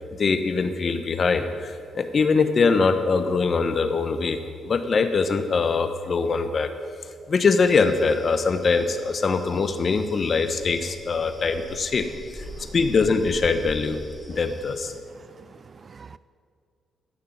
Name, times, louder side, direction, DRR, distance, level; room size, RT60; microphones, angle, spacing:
voice 1, 0.2-6.7 7.3-12.1 12.3-14.0 14.3-14.9, left 4 dB, 45° left, 9 dB, 1.2 m, -23 dB
sound 1, 7.6-15.0, equal, 5° right, 1.6 m, -43 dB
voice 2, 15.1-16.2, right 5 dB, 40° right, 17 dB, 0.3 m, -47 dB
15.5 x 6.6 x 9.3 m, 2.2 s
cardioid pair, 90°, 0 cm